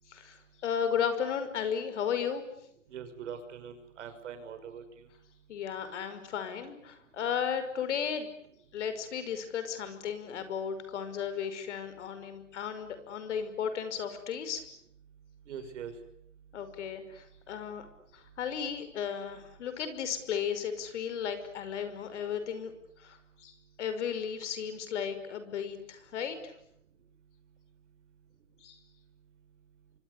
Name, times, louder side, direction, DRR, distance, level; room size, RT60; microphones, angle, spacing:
voice 1, 0.6-2.4 5.5-8.3 8.7-14.6 16.5-17.8 18.1-22.7 23.0-23.5 23.8-26.5 28.6-28.8, left 7 dB, 65° left, 10 dB, 5.7 m, -34 dB
voice 2, 2.9-4.8 15.5-15.9, right 8 dB, 70° right, 9 dB, 6.1 m, -42 dB
28.5 x 24.5 x 8.4 m, 0.73 s
hypercardioid pair, 130°, 38 cm